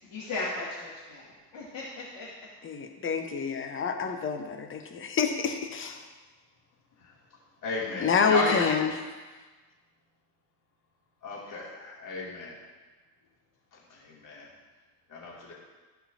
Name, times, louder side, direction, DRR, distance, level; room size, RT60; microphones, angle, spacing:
voice 1, 0.1-2.3, left 2 dB, 60° left, -10 dB, 2.6 m, -36 dB
voice 2, 2.6-6.1 8.0-8.9, left 6 dB, 25° left, 6 dB, 1.0 m, -28 dB
voice 3, 7.6-8.8 11.2-12.6 13.7-14.5 15.1-15.5, left 2 dB, 40° left, -5 dB, 2.6 m, -33 dB
13.5 x 5.6 x 2.8 m, 1.3 s
hypercardioid pair, 65°, 47 cm